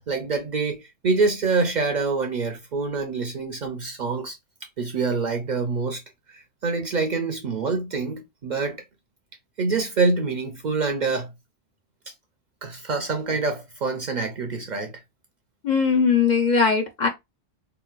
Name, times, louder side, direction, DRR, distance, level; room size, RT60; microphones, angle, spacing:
voice 1, 0.0-4.4 4.8-6.0 6.3-8.8 9.6-11.3 12.6-15.0, right 4 dB, 55° right, 0.5 m, -26 dB
voice 2, 15.6-17.1, left 5 dB, 55° left, 0.6 m, -20 dB
3.9 x 2.3 x 2.3 m
omnidirectional pair, 1.1 m